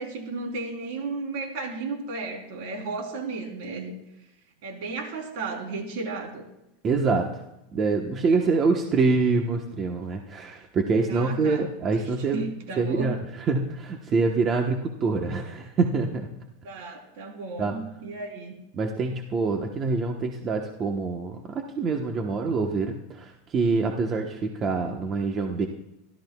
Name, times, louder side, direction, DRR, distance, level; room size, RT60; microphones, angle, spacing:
voice 1, 0.0-3.9 4.6-6.4 11.1-11.6 12.3-13.1 16.6-18.5, right 3 dB, 65° right, 2 dB, 3.6 m, -34 dB
voice 2, 6.8-7.4 7.7-12.4 12.8-16.3 17.6-17.8 18.7-25.7, right 4 dB, 30° right, 3 dB, 1.1 m, -25 dB
26.5 x 13.0 x 2.3 m, 0.87 s
supercardioid pair, 145°, 0 cm